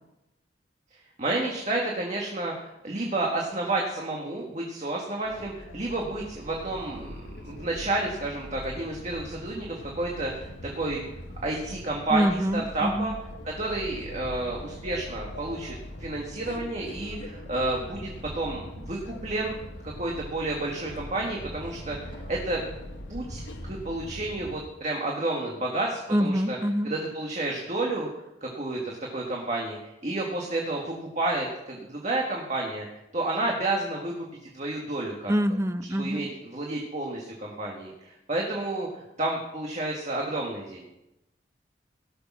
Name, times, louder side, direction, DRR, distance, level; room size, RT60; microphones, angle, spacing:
voice 1, 1.2-7.1 7.4-11.0 11.4-13.1 13.4-19.6 19.8-22.6 23.1-26.6 26.8-28.1 28.4-32.9 33.1-34.2 34.5-35.3 35.9-38.9 39.2-40.9, right 2 dB, 40° right, -1 dB, 1.6 m, -30 dB
sound 1, 5.2-24.6, left 1 dB, 80° left, 1.3 m, -41 dB
voice 2, 12.1-13.1 26.1-26.9 35.3-36.3, equal, 15° right, 10 dB, 0.6 m, -25 dB
17.0 x 6.7 x 6.1 m, 0.91 s
head